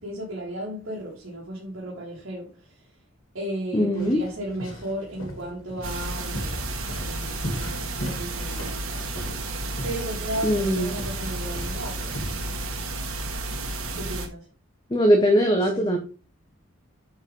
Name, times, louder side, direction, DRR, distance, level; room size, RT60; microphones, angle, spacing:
voice 1, 0.0-2.9 3.3-6.6 7.0-12.2 13.9-14.5 15.5-15.9, right 1 dB, 65° right, 3.1 m, -35 dB
voice 2, 3.7-4.2 10.4-10.9 14.9-16.0, equal, 20° left, 1.1 m, -20 dB
sound 1, 4.0-12.4, equal, 80° left, 3.3 m, -38 dB
sound 2, 5.8-14.3, right 2 dB, 85° right, 1.9 m, -32 dB
9.4 x 5.2 x 3.8 m
head